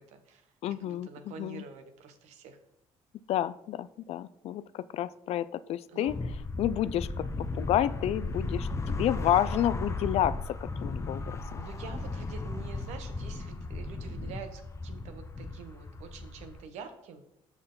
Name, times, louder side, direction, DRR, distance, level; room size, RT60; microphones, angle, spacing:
voice 1, 0.1-2.6 5.9-6.1 11.6-17.2, right 6 dB, 80° right, 7 dB, 1.0 m, -47 dB
voice 2, 0.6-1.1 1.4-1.6 3.3-6.2 6.6-7.3 7.5-11.6, left 12 dB, 65° left, 16 dB, 0.4 m, -30 dB
sound 1, 6.1-16.6, left 2 dB, 25° left, 0.7 m, -36 dB
6.5 x 6.0 x 3.9 m, 0.79 s
supercardioid pair, 75°, 12 cm